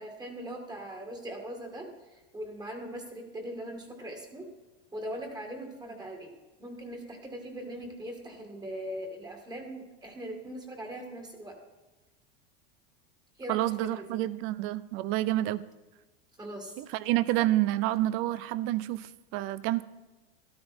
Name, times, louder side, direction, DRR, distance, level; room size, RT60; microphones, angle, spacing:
voice 1, 0.0-1.9 2.3-4.5 4.9-6.3 6.6-11.5 13.4-13.6 14.0-14.2 16.4-16.7, right 1 dB, 15° right, 2 dB, 2.1 m, -40 dB
voice 2, 13.5-15.6 16.8-19.8, right 15 dB, 45° right, 18 dB, 0.7 m, -28 dB
13.0 x 12.0 x 4.3 m, 1.1 s
supercardioid pair, 135°, 29 cm